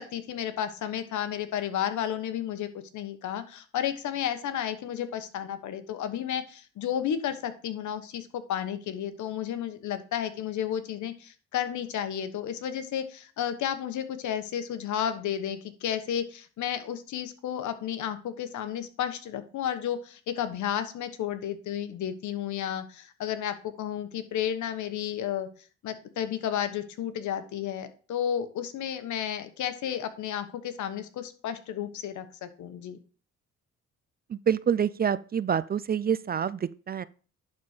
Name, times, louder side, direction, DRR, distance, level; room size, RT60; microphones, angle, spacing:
voice 1, 0.0-25.5 25.8-33.0, left 9 dB, 75° left, 1.2 m, -32 dB
voice 2, 34.3-37.1, right 8 dB, 30° right, 0.4 m, -27 dB
11.0 x 4.2 x 4.9 m
cardioid pair, 90°, 30 cm